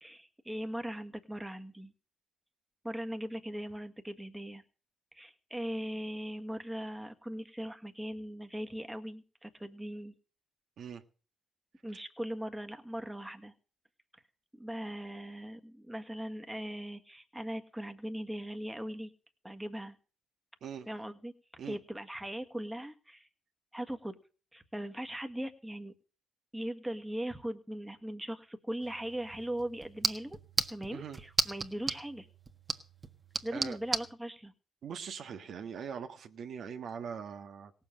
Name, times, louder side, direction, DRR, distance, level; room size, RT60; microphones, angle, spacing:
voice 1, 0.0-1.9 2.8-4.6 5.1-10.1 11.8-13.5 14.6-19.1 19.4-20.0 20.9-21.3 21.6-23.3 23.7-24.1 24.5-25.9 26.5-30.4 30.7-32.3 33.4-34.5, equal, 5° right, 1.7 m, -39 dB
sound 1, 28.8-34.1, right 3 dB, 30° right, 1.5 m, -36 dB
voice 2, 34.8-37.7, right 7 dB, 65° right, 1.6 m, -42 dB
17.5 x 7.3 x 7.4 m
cardioid pair, 90°, 0 cm